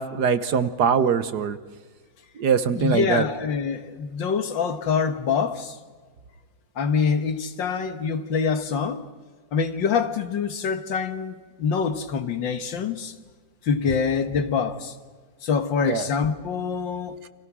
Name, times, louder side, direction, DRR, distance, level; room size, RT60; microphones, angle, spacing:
voice 1, 0.0-1.6 2.3-3.3 15.8-16.1, right 6 dB, 60° right, 1.5 m, -22 dB
voice 2, 2.8-5.8 6.8-9.0 9.5-13.1 13.6-14.9 15.4-17.2, left 6 dB, 70° left, 2.1 m, -25 dB
30.0 x 26.0 x 6.1 m
omnidirectional pair, 2.1 m